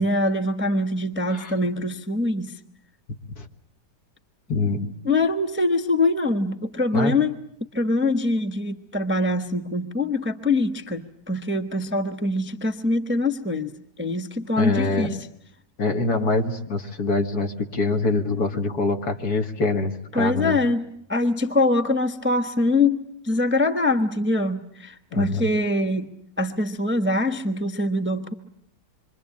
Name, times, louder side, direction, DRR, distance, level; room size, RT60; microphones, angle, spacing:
voice 1, 0.0-2.6 5.0-7.3 7.7-13.7 14.0-15.3 20.1-20.8 21.1-28.3, left 2 dB, 10° right, 7 dB, 0.9 m, -24 dB
voice 2, 4.5-5.0 6.9-7.2 14.6-15.2 15.8-20.6 25.1-25.5, left 3 dB, 60° left, 5 dB, 2.3 m, -24 dB
27.0 x 24.0 x 8.6 m, 0.72 s
omnidirectional pair, 1.9 m